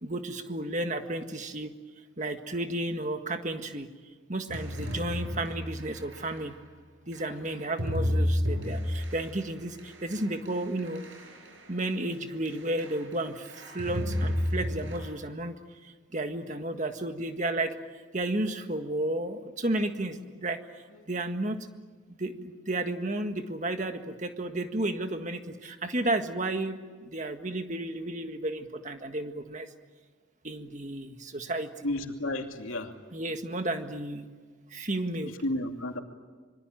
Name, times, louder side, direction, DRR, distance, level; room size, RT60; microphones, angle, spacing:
voice 1, 0.0-1.7 2.2-3.9 4.3-6.5 7.1-11.0 11.7-15.6 15.8-17.8 18.1-20.6 21.1-21.6 22.2-29.7 30.4-31.9 33.1-34.3 34.7-35.3, right 1 dB, 35° right, 6 dB, 1.8 m, -32 dB
sound 1, 4.5-6.5 7.1-12.1 12.4-13.2 13.4-15.0, left 1 dB, 70° right, 7.4 m, -32 dB
voice 2, 31.8-32.9 35.2-36.0, left 1 dB, 90° left, 4 dB, 2.8 m, -32 dB
26.0 x 24.0 x 9.2 m, 1.4 s
head